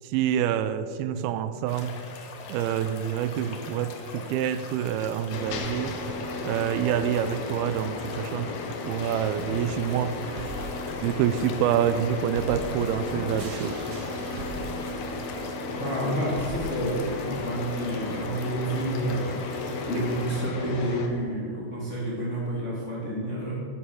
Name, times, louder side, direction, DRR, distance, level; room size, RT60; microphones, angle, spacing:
voice 1, 0.0-1.9 2.5-6.0 6.4-8.5 8.8-10.1 11.0-13.9, right 9 dB, 85° right, 12 dB, 2.5 m, -27 dB
sound 1, 1.7-20.5, left 4 dB, 65° left, 1.6 m, -43 dB
sound 2, 5.3-21.1, left 3 dB, 90° left, 3.1 m, -35 dB
sound 3, 9.4-17.4, right 1 dB, 55° right, 1.7 m, -41 dB
voice 2, 15.7-23.5, right 1 dB, 35° left, -5 dB, 1.1 m, -29 dB
9.8 x 9.3 x 6.2 m, 2.5 s
omnidirectional pair, 4.3 m